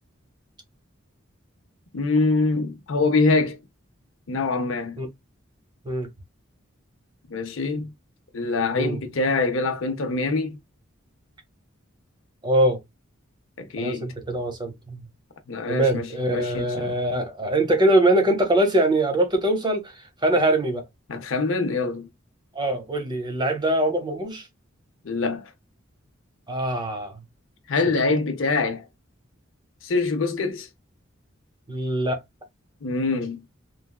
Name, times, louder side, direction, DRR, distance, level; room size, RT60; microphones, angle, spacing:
voice 1, 1.9-3.6 4.3-5.0 7.3-7.9 8.3-10.6 13.6-14.1 15.5-16.9 21.1-22.1 25.0-25.5 27.7-28.9 29.8-30.7 32.8-33.4, left 3 dB, 70° left, 0.6 m, -24 dB
voice 2, 12.4-12.8 13.8-15.0 15.7-20.8 22.5-24.5 26.5-27.2 31.7-32.2, right 1 dB, 20° right, 0.9 m, -23 dB
3.2 x 2.3 x 2.3 m
head